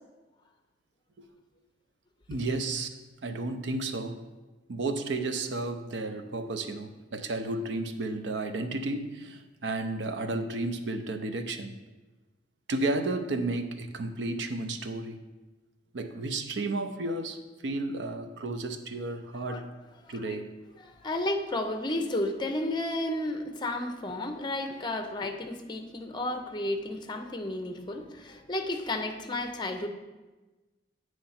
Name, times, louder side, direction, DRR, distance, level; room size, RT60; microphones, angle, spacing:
voice 1, 2.3-2.9 3.2-4.3 4.7-11.8 12.7-15.2 15.9-19.7 20.1-20.5, right 2 dB, 75° right, 7 dB, 0.6 m, -32 dB
voice 2, 20.8-29.9, left 1 dB, 25° left, 5 dB, 0.6 m, -32 dB
8.7 x 3.2 x 5.6 m, 1.2 s
head